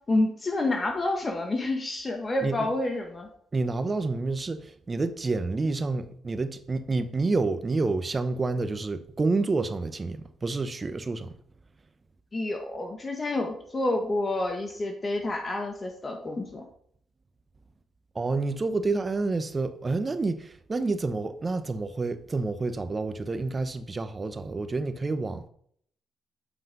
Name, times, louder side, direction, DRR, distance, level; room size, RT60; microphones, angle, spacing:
voice 1, 0.1-3.3 12.3-16.6, left 2 dB, 30° left, 1.5 m, -28 dB
voice 2, 3.5-11.3 18.1-25.5, right 3 dB, 30° right, 0.9 m, -29 dB
8.1 x 5.6 x 5.4 m
cardioid pair, 90°, 0 cm